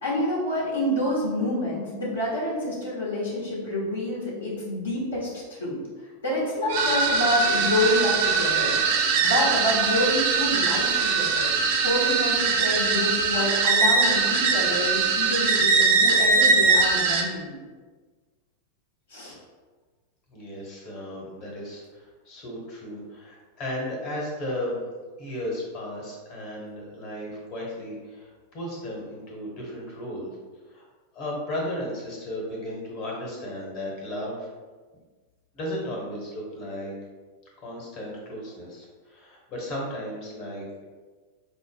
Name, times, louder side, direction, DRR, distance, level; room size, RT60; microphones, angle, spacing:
voice 1, 0.0-5.8 6.2-8.8 9.2-11.5 11.8-17.6 19.1-19.4, left 1 dB, 70° left, -5 dB, 1.0 m, -27 dB
sound 1, 6.7-17.2, right 4 dB, 50° right, 0.5 m, -22 dB
voice 2, 20.3-24.8 25.2-30.3 30.7-30.8 31.1-34.5 35.5-36.9 37.6-40.8, left 1 dB, 40° left, -2 dB, 1.2 m, -35 dB
4.7 x 2.1 x 3.4 m, 1.4 s
figure-of-eight pair, 90°, 0 cm